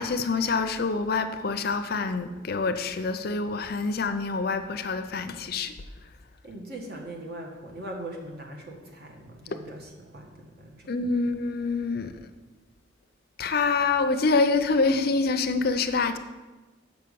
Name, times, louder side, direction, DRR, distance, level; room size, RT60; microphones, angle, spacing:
voice 1, 0.0-5.7 10.9-12.2 13.4-16.2, left 4 dB, 50° left, 9 dB, 0.5 m, -26 dB
voice 2, 6.4-10.9, right 1 dB, 50° right, 1 dB, 1.6 m, -41 dB
6.8 x 5.7 x 6.8 m, 1.2 s
head